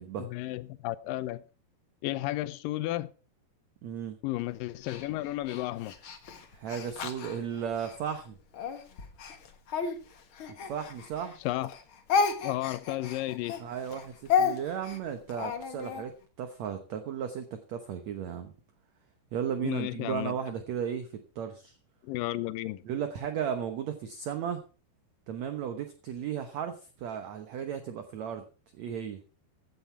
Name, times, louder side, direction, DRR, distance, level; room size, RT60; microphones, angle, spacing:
voice 1, 0.2-1.4 2.0-3.1 4.2-5.9 11.4-11.7 12.4-13.6 19.6-20.4 22.0-22.8, left 16 dB, 80° left, 2.1 m, -33 dB
voice 2, 3.8-4.2 6.5-8.4 10.7-11.4 13.6-16.1 16.4-18.5 19.3-21.8 22.8-24.6 25.3-28.4 28.8-29.2, right 8 dB, 70° right, 1.7 m, -35 dB
Speech, 4.8-8.0 8.5-11.4 11.6-16.0, left 6 dB, 60° left, 1.3 m, -32 dB
15.5 x 9.7 x 4.5 m
omnidirectional pair, 4.7 m